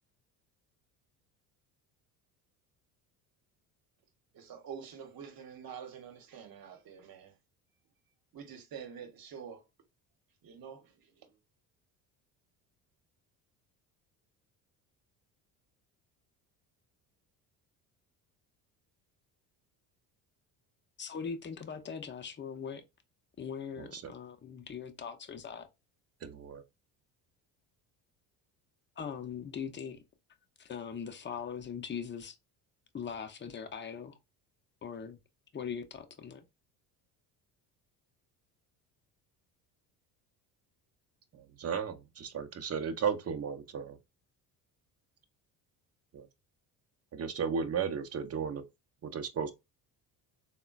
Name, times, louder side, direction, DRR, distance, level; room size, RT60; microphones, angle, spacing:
voice 1, 4.3-7.4 8.3-9.7 10.4-11.4, right 7 dB, 45° right, 1.0 m, -47 dB
voice 2, 21.0-22.8 23.4-25.7 29.0-30.0 30.6-32.4 32.9-34.1 34.8-35.2 35.5-36.4, left 7 dB, 25° left, 0.6 m, -40 dB
voice 3, 23.8-24.1 26.2-26.6 41.3-44.0 46.1-46.3 47.1-48.6 49.0-49.5, right 6 dB, 30° right, 0.7 m, -35 dB
3.6 x 2.2 x 2.4 m
hypercardioid pair, 65°, 48 cm